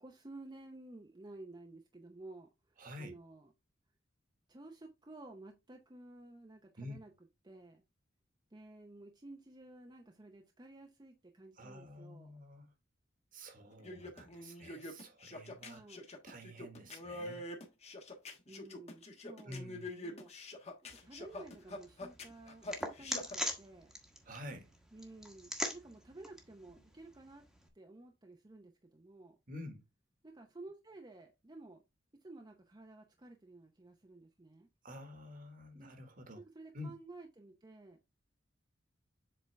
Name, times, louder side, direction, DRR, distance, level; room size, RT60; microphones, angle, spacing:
voice 1, 0.0-3.5 4.5-7.8 8.5-12.3 15.6-16.1 18.5-23.9 24.9-27.4 27.7-29.4 30.2-31.8 32.2-34.7 35.7-35.9 36.4-38.0, right 2 dB, 20° right, 0.8 m, -53 dB
voice 2, 2.8-3.1 6.8-7.0 11.6-12.7 13.3-15.8 16.2-17.4 19.4-19.9 24.2-24.7 29.5-29.8 34.8-36.4 36.7-36.9, left 1 dB, 45° right, 1.6 m, -49 dB
sound 1, 13.7-23.4, left 1 dB, 35° left, 1.3 m, -45 dB
sound 2, 20.9-27.7, equal, 5° right, 1.3 m, -44 dB
7.7 x 4.0 x 3.3 m
head